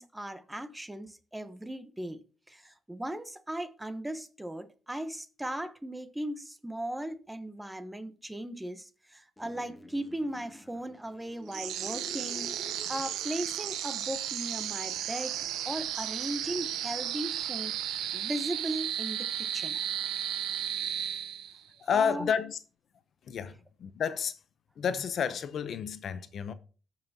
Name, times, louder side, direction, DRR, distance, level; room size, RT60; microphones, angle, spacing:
voice 1, 0.0-2.2 2.5-15.4 15.6-17.8 18.1-19.8 21.9-22.3, right 1 dB, 10° right, 0.8 m, -37 dB
sound 1, 9.4-13.4, left 1 dB, 10° left, 1.4 m, -49 dB
sound 2, 11.5-21.7, right 11 dB, 90° right, 0.6 m, -34 dB
voice 2, 21.8-22.6 23.2-24.4 24.8-26.5, left 7 dB, 60° left, 0.7 m, -30 dB
14.0 x 5.6 x 2.8 m
cardioid pair, 90°, 0 cm